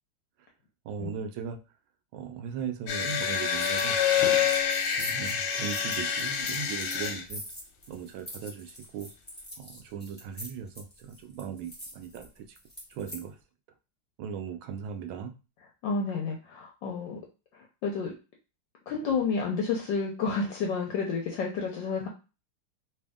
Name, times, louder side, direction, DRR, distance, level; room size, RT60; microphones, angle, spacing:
voice 1, 0.8-1.6 2.1-4.5 4.9-7.4 7.9-9.1 9.6-12.5 12.9-13.4 14.2-15.3, right 7 dB, 75° right, 6 dB, 1.2 m, -38 dB
sound 1, 2.9-7.2, left 8 dB, 90° left, 1.6 m, -27 dB
sound 2, 3.5-3.9 4.2-13.2, equal, 15° left, 0.3 m, -44 dB
voice 2, 15.8-17.2 17.5-18.1 18.9-22.1, left 4 dB, 75° left, 1 dB, 1.1 m, -30 dB
3.4 x 2.6 x 3.5 m, 0.31 s
omnidirectional pair, 2.4 m